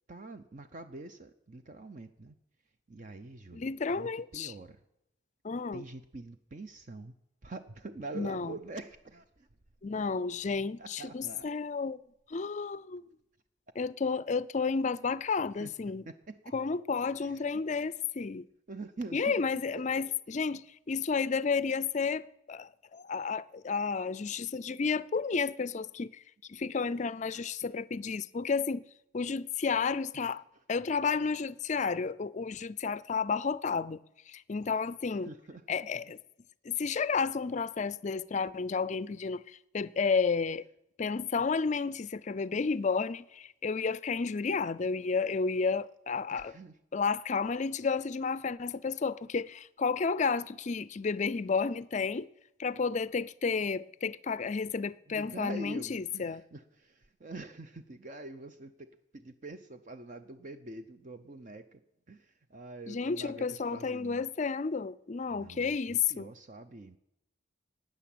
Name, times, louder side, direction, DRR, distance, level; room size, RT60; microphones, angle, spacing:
voice 1, 0.1-2.3 2.9-4.8 5.7-7.1 7.4-9.5 10.8-11.5 15.6-16.5 17.2-17.5 18.7-19.4 19.8-20.1 27.2-27.5 30.1-30.6 35.1-36.1 46.3-46.8 55.1-64.3 65.3-67.0, right 2 dB, 40° right, 0.6 m, -46 dB
voice 2, 3.5-4.5 5.4-5.8 8.2-8.5 9.8-12.0 12.3-13.0 13.8-16.0 16.5-18.5 19.1-26.2 26.5-28.8 29.1-30.4 30.7-34.0 34.3-35.3 35.7-36.2 36.6-40.7 41.0-46.5 46.9-52.3 52.6-56.4 62.9-66.3, left 5 dB, 40° left, 0.4 m, -31 dB
13.0 x 9.3 x 8.5 m
head